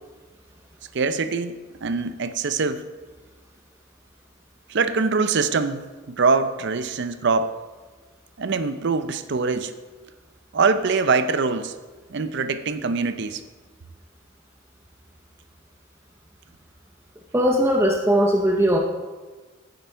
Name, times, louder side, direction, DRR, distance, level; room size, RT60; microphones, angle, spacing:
voice 1, 0.9-2.8 4.7-7.5 8.4-9.7 10.5-11.7 12.1-13.4, right 4 dB, 60° right, 11 dB, 0.6 m, -23 dB
voice 2, 17.3-18.8, equal, 15° right, 1 dB, 0.6 m, -19 dB
9.4 x 7.9 x 4.5 m, 1.3 s
head